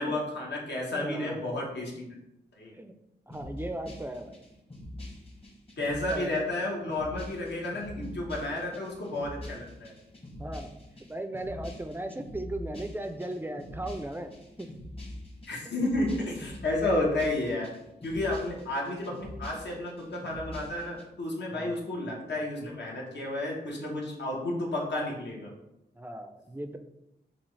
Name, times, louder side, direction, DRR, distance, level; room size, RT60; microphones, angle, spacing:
voice 1, 0.0-2.1 2.6-2.7 5.8-9.9 15.5-17.7 18.0-25.5, left 2 dB, 75° left, -2 dB, 1.2 m, -31 dB
voice 2, 0.9-1.4 2.0-2.1 2.7-2.9 3.3-4.4 5.9-6.5 10.4-10.7 11.1-14.3 14.6-14.7 21.5-21.8 26.0-26.8, right 1 dB, 10° right, 7 dB, 0.3 m, -37 dB
sound 1, 3.3-21.0, left 1 dB, 35° left, 1.0 m, -44 dB
5.8 x 2.4 x 3.2 m, 0.87 s
wide cardioid pair, 110°, 18 cm